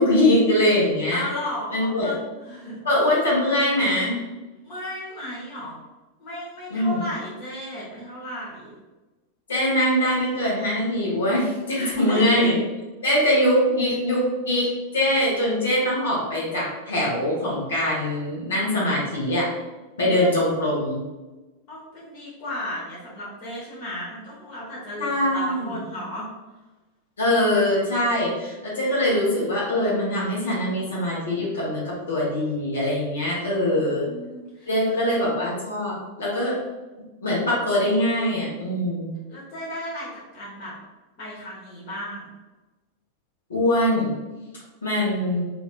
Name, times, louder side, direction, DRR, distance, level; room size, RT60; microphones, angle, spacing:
voice 1, 0.0-1.3 1.7-2.1 2.8-4.2 6.7-7.0 9.5-12.5 13.0-19.5 20.0-21.0 25.0-25.8 27.2-34.1 34.7-36.5 37.2-39.1 43.5-44.2 44.8-45.5, left 1 dB, 70° left, -6 dB, 1.2 m, -22 dB
voice 2, 1.1-2.8 4.6-5.8 6.2-8.8 11.8-12.5 20.2-20.3 21.7-26.3 33.7-34.9 39.3-40.7 41.2-42.3, left 1 dB, 45° left, -7 dB, 1.0 m, -35 dB
3.2 x 2.7 x 2.4 m, 1.1 s
figure-of-eight pair, 90°, 0 cm